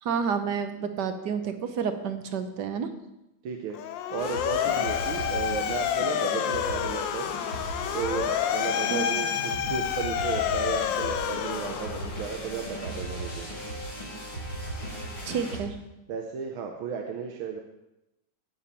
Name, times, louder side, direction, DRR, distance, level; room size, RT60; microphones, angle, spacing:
voice 1, 0.0-2.9 8.9-9.1 15.3-15.8, right 6 dB, 60° right, 8 dB, 1.4 m, -30 dB
voice 2, 3.4-3.8 4.1-7.3 7.9-9.3 9.7-13.5 16.1-17.6, right 6 dB, 80° right, 2 dB, 1.8 m, -34 dB
Motor vehicle (road) / Siren, 3.7-12.3, left 10 dB, 75° left, 1.2 m, -29 dB
sound 1, 4.2-15.6, right 1 dB, 90° left, 5.5 m, -37 dB
18.0 x 7.1 x 4.3 m, 0.91 s
omnidirectional pair, 2.3 m